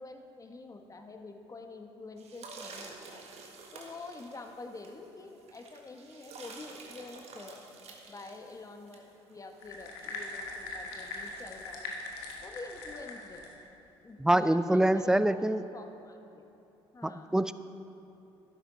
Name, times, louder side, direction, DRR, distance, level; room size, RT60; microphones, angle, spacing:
voice 1, 0.0-3.2 3.7-7.6 8.1-11.9 12.4-13.5 14.0-16.4 16.9-17.3, left 3 dB, 25° left, 5 dB, 1.2 m, -47 dB
sound 1, 2.2-12.4, right 3 dB, 55° right, 1.5 m, -50 dB
sound 2, 9.6-13.6, left 3 dB, 80° left, 1.2 m, -41 dB
voice 2, 14.2-15.6 17.0-17.5, right 1 dB, 5° right, 13 dB, 0.4 m, -25 dB
12.0 x 10.5 x 3.9 m, 2.9 s
hypercardioid pair, 55°, 13 cm